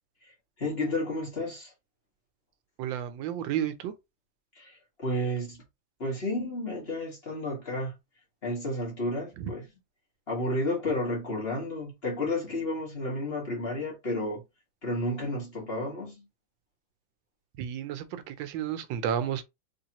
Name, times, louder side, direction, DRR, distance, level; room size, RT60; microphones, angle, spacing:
voice 1, 0.6-1.7 4.5-5.6 6.0-7.9 8.4-9.7 10.3-14.4 14.8-16.3, left 1 dB, 35° left, 1.5 m, -31 dB
voice 2, 2.8-3.9 9.4-9.5 17.6-19.4, right 9 dB, 85° right, 1.3 m, -32 dB
3.4 x 3.1 x 2.9 m
omnidirectional pair, 2.1 m